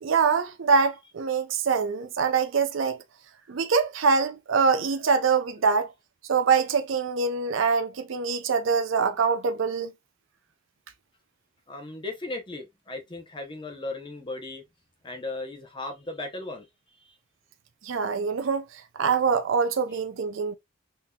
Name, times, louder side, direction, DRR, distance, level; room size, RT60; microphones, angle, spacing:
voice 1, 0.0-3.0 3.5-5.9 6.3-9.9 17.8-18.6 19.0-20.5, right 5 dB, 75° right, 0.5 m, -24 dB
voice 2, 11.7-14.6 15.0-16.7, left 2 dB, 25° left, 0.7 m, -36 dB
3.7 x 2.8 x 2.2 m
head